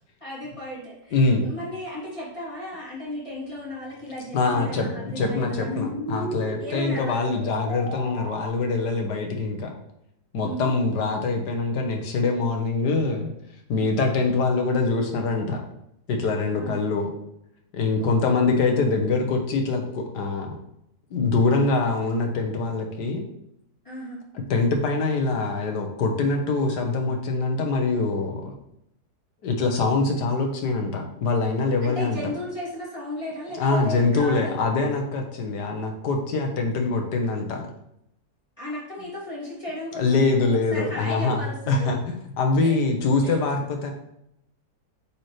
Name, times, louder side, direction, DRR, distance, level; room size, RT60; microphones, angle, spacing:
voice 1, 0.2-5.9 6.6-7.3 10.4-10.7 16.5-16.9 18.0-18.3 23.8-24.2 31.8-34.7 38.6-42.0 42.6-43.4, equal, 15° left, -7 dB, 2.6 m, -35 dB
voice 2, 1.1-1.5 4.3-4.9 5.2-9.7 10.3-13.3 13.7-15.6 16.1-17.1 17.7-20.6 21.1-23.2 24.5-28.6 29.4-32.2 33.5-37.6 40.0-41.4 41.7-43.9, left 3 dB, 70° left, 3 dB, 1.7 m, -24 dB
sound 1, 3.5-8.5, equal, ahead, 1.6 m, -36 dB
8.2 x 4.4 x 3.2 m, 0.77 s
omnidirectional pair, 1.9 m